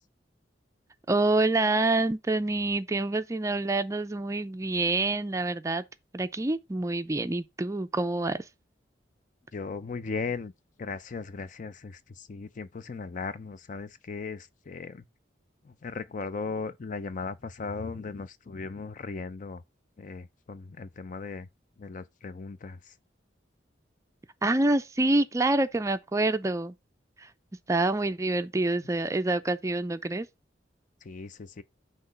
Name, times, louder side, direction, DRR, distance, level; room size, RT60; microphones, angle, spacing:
voice 1, 1.1-5.8 6.1-8.4 24.4-26.7 27.7-30.3, right 2 dB, 15° right, 0.4 m, -26 dB
voice 2, 9.5-10.5 10.8-15.0 15.6-19.6 20.0-21.5 21.8-22.8 31.0-31.6, left 4 dB, 45° left, 0.4 m, -37 dB
5.9 x 3.0 x 5.4 m
head